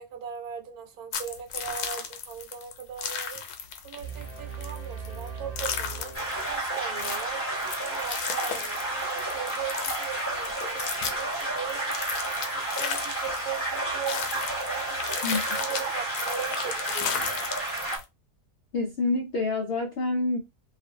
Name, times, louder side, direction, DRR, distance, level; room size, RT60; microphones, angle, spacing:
voice 1, 0.0-3.4 3.8-6.1 6.4-7.4 7.8-12.0 12.5-14.2 14.7-17.5, right 8 dB, 75° right, 1.1 m, -39 dB
sound 1, 1.1-18.0, left 7 dB, 85° left, 1.1 m, -35 dB
sound 2, 4.0-7.2, right 6 dB, 35° right, 0.7 m, -39 dB
sound 3, 6.1-18.0, right 2 dB, 10° left, 0.8 m, -31 dB
voice 2, 18.7-20.4, left 3 dB, 70° left, 0.5 m, -27 dB
2.5 x 2.4 x 2.6 m
omnidirectional pair, 1.6 m